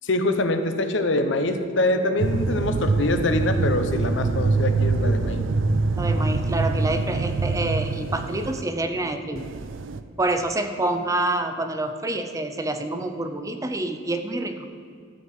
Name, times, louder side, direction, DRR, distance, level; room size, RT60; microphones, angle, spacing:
voice 1, 0.0-5.4, left 2 dB, 70° left, 8 dB, 0.8 m, -24 dB
sound 1, 2.2-8.6 9.4-10.0, right 3 dB, 80° right, 0.5 m, -24 dB
voice 2, 6.0-9.4 10.2-14.7, right 2 dB, 15° right, 6 dB, 0.6 m, -27 dB
12.5 x 4.8 x 8.1 m, 2.2 s
head